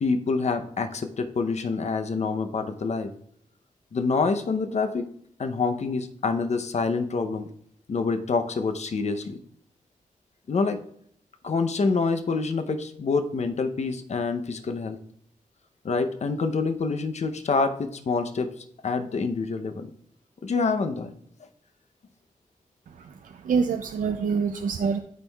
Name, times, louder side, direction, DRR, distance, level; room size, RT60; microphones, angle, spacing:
voice 1, 0.0-3.1 3.9-5.1 5.4-7.5 7.9-9.4 10.5-10.8 11.4-15.0 15.8-18.5 18.8-19.9 20.4-21.1, left 4 dB, 55° left, 8 dB, 0.7 m, -26 dB
voice 2, 23.0-25.0, right 5 dB, 70° right, 7 dB, 0.4 m, -26 dB
12.0 x 4.5 x 2.3 m, 0.64 s
cardioid pair, 75°, 14 cm